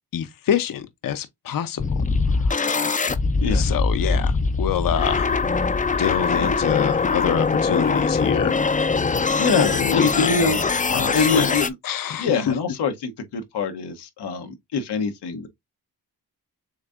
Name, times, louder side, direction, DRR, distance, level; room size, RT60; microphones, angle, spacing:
voice 1, 0.1-1.8 2.3-2.9 3.5-4.3 4.6-5.3 6.0-8.6 9.6-10.4 10.9-11.5 11.8-12.3, left 9 dB, 55° left, 0.7 m, -26 dB
sound 1, 1.8-11.7, left 4 dB, 20° left, 0.4 m, -22 dB
voice 2, 3.4-3.8 6.4-6.7 9.1-10.6 11.1-11.7 12.2-15.5, left 4 dB, 90° left, 0.9 m, -25 dB
7.1 x 2.6 x 2.4 m
cardioid pair, 70°, 39 cm